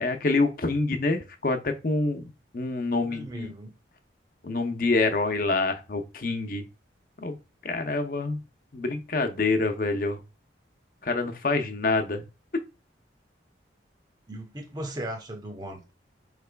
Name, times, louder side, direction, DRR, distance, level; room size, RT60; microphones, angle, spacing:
voice 1, 0.0-3.5 4.4-6.6 7.2-7.4 7.6-8.4 8.7-10.2 11.0-12.2, left 3 dB, 50° left, 0.6 m, -26 dB
voice 2, 3.1-3.7 14.3-15.9, right 1 dB, 20° right, 0.8 m, -37 dB
4.7 x 3.3 x 2.2 m
head